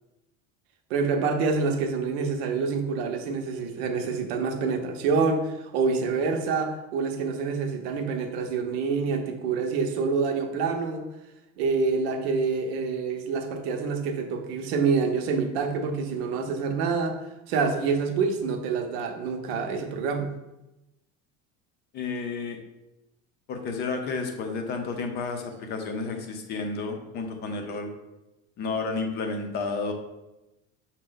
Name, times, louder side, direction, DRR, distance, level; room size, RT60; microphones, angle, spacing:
voice 1, 0.9-11.0 11.6-17.2 17.5-20.3, right 4 dB, 75° right, 5 dB, 0.7 m, -27 dB
voice 2, 21.9-22.6 23.5-27.9 28.6-29.9, left 4 dB, 30° left, 5 dB, 0.5 m, -31 dB
5.8 x 2.2 x 3.8 m, 0.96 s
cardioid pair, 165°, 32 cm